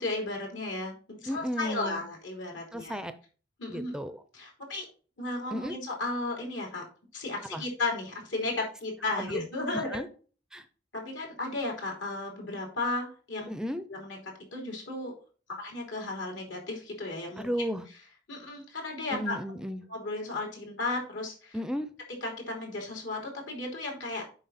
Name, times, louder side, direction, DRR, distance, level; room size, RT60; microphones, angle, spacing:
voice 1, 0.0-3.0 3.6-3.9 4.3-4.9 5.2-6.9 7.1-10.0 10.9-13.5 13.9-14.2 14.5-15.1 15.6-17.5 18.3-19.4 19.9-21.6 22.2-24.2, left 2 dB, 75° left, 0 dB, 3.1 m, -34 dB
voice 2, 1.3-2.0 2.7-3.1 3.7-4.2 5.5-5.8 7.5-7.6 9.2-9.5 9.7-10.1 10.5-10.7 13.5-13.8 17.4-17.8 19.1-19.8 21.5-21.9, equal, 5° right, 10 dB, 0.5 m, -34 dB
7.8 x 5.4 x 4.1 m, 0.39 s
head